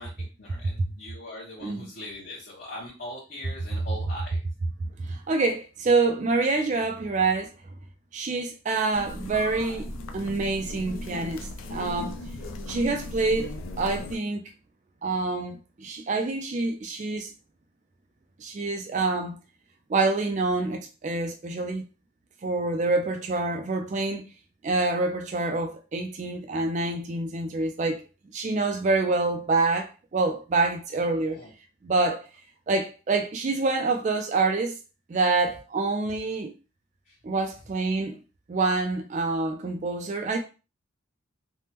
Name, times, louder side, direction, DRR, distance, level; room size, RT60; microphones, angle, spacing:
voice 1, 0.0-4.4 31.2-31.5 37.0-37.2, left 1 dB, 45° left, 0.9 m, -41 dB
voice 2, 5.0-7.5 8.1-9.9 10.1-12.2 12.7-14.4 15.0-17.3 18.4-19.4 19.9-21.8 22.4-24.2 24.6-28.0 28.3-31.4 31.8-32.3 32.7-34.8 35.1-36.5 37.2-38.2 38.5-40.4, right 3 dB, 35° right, 0.3 m, -26 dB
sound 1, 8.9-14.2, left 2 dB, 70° left, 0.4 m, -37 dB
3.3 x 2.1 x 2.8 m
head